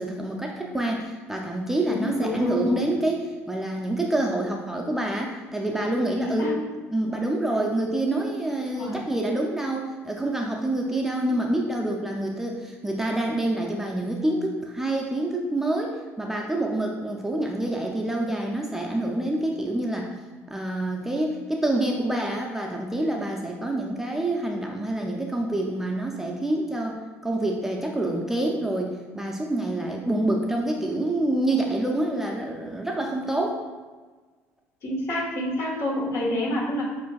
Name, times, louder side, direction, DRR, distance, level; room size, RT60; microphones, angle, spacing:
voice 1, 0.0-6.5 6.9-20.1 20.5-33.6, right 1 dB, 5° right, 0 dB, 0.4 m, -27 dB
voice 2, 1.9-2.8 6.2-6.5 8.7-9.0 34.8-36.8, left 1 dB, 55° left, -4 dB, 1.4 m, -28 dB
7.5 x 2.5 x 2.3 m, 1.4 s
supercardioid pair, 95°, 6 cm